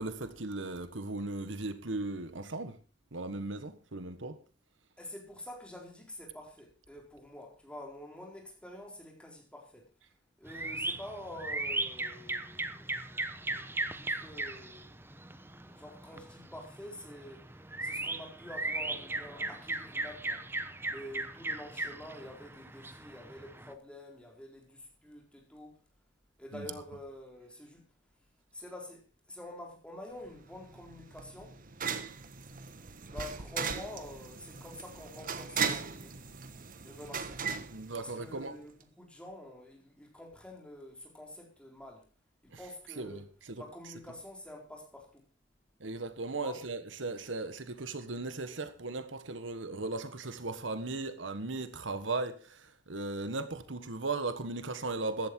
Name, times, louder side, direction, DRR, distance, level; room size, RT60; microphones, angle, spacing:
voice 1, 0.0-2.8 3.1-4.4 26.5-26.7 37.7-38.6 42.5-42.6 43.0-43.6 45.8-55.3, right 3 dB, 85° right, 1.5 m, -37 dB
voice 2, 5.0-9.9 10.4-14.9 15.5-17.5 17.8-20.4 20.9-25.7 26.4-27.8 28.5-29.0 29.3-31.6 33.1-37.4 38.0-42.0 42.4-43.3 43.6-45.2 46.3-46.6, left 1 dB, 5° left, 4.1 m, -48 dB
sound 1, 10.5-23.7, right 2 dB, 10° right, 1.1 m, -38 dB
sound 2, 30.2-38.6, right 6 dB, 50° right, 1.3 m, -38 dB
15.0 x 12.0 x 4.5 m
head